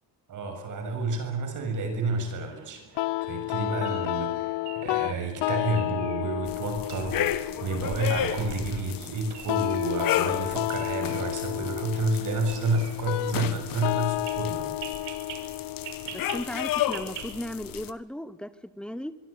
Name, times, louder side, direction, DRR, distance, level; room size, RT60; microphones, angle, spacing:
voice 1, 0.3-14.7, right 3 dB, 45° right, 5 dB, 7.1 m, -30 dB
sound 1, 2.1-17.3, right 8 dB, 65° right, 6.4 m, -47 dB
sound 2, 3.0-17.9, left 19 dB, 65° left, 0.8 m, -32 dB
sound 3, 6.5-17.9, left 12 dB, 50° left, 1.6 m, -33 dB
voice 2, 16.1-19.2, equal, ahead, 15 dB, 1.0 m, -36 dB
24.5 x 23.5 x 8.4 m, 1.0 s
cardioid pair, 175°, 44 cm